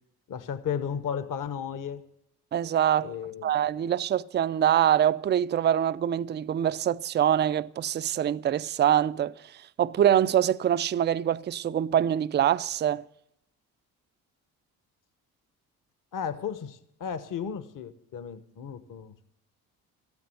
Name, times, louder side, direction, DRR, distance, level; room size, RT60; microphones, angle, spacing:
voice 1, 0.3-2.0 3.0-3.6 16.1-19.1, left 7 dB, 45° left, 1.1 m, -34 dB
voice 2, 2.5-3.1 3.4-9.4 9.8-13.0, right 10 dB, 25° right, 0.4 m, -24 dB
13.5 x 9.6 x 7.9 m
hypercardioid pair, 55°, 44 cm